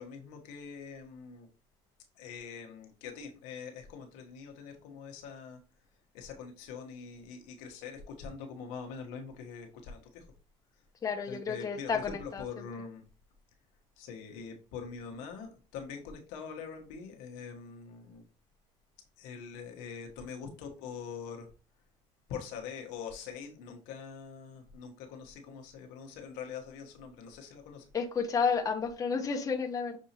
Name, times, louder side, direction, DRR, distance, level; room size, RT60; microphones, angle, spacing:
voice 1, 0.0-1.5 2.2-5.6 6.1-10.2 11.3-13.0 14.0-18.2 19.2-21.5 22.3-27.8, left 6 dB, 80° left, 3 dB, 1.1 m, -44 dB
voice 2, 11.0-12.7 27.9-30.0, left 5 dB, 25° left, 3 dB, 0.8 m, -31 dB
6.2 x 2.7 x 2.8 m, 0.35 s
supercardioid pair, 110°, 13 cm